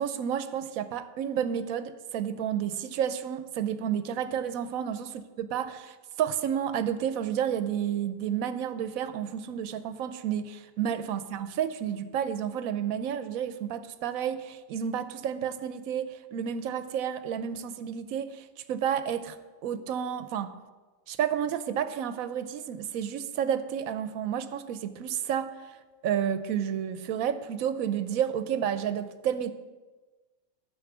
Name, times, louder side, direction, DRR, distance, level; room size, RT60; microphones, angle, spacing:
voice 1, 0.0-19.4 19.6-20.5 21.1-25.5 26.0-29.5, right 9 dB, 80° right, 12 dB, 1.1 m, -31 dB
9.5 x 5.9 x 8.0 m, 1.3 s
omnidirectional pair, 1.5 m